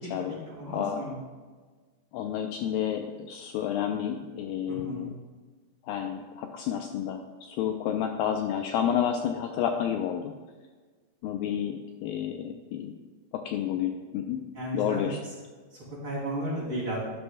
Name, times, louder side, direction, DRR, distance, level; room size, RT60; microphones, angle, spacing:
voice 1, 0.0-1.1 4.7-5.1 14.5-15.0 15.7-17.0, right 1 dB, 35° right, -6 dB, 3.2 m, -34 dB
voice 2, 0.7-1.0 2.1-5.1 5.9-10.3 11.2-12.9 13.3-14.4 14.7-15.2, left 9 dB, 80° left, 4 dB, 2.1 m, -30 dB
12.0 x 9.9 x 2.2 m, 1.4 s
omnidirectional pair, 4.5 m